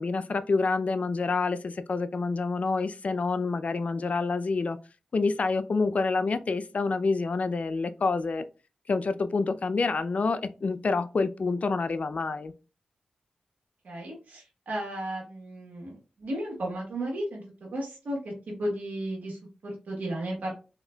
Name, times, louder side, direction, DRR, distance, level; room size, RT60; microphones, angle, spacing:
voice 1, 0.0-4.8 5.1-8.4 8.9-12.5, left 4 dB, 60° left, 0.4 m, -27 dB
voice 2, 13.8-20.5, right 1 dB, 80° right, 1.2 m, -34 dB
3.8 x 2.8 x 2.2 m
cardioid pair, 40°, 3 cm